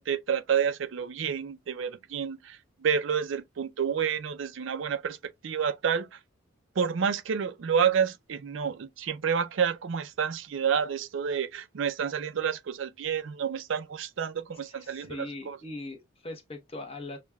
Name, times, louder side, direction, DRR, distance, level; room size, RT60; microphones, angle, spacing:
voice 1, 0.0-5.2 5.4-6.2 6.8-15.6, right 7 dB, 70° right, 0.4 m, -29 dB
voice 2, 14.7-17.2, left 2 dB, 30° left, 0.8 m, -40 dB
6.3 x 2.2 x 2.2 m
head